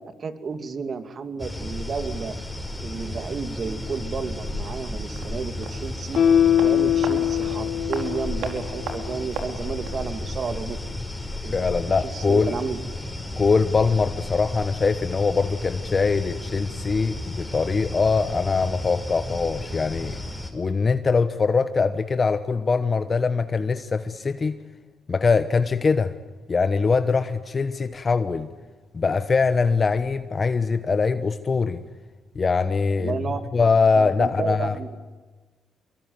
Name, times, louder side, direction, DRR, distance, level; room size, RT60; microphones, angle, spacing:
voice 1, 0.0-2.4 2.8-6.2 6.6-10.8 11.4-12.8 33.0-33.4 33.9-35.0, right 5 dB, 45° right, 9 dB, 2.5 m, -32 dB
sound 1, 1.4-20.5, left 1 dB, 5° left, 5.1 m, -34 dB
sound 2, 5.1-10.1 10.4-10.5, right 5 dB, 80° right, 4.4 m, -38 dB
Guitar, 6.1-9.4 9.8-9.9, left 9 dB, 65° left, 4.7 m, -22 dB
voice 2, 11.5-12.5 13.4-20.2 20.5-24.6 25.1-26.1 26.5-28.5 28.9-31.8 32.3-33.2 33.5-34.8, left 4 dB, 35° left, 10 dB, 1.1 m, -22 dB
25.5 x 22.5 x 9.5 m, 1.3 s
cardioid pair, 90°, 0 cm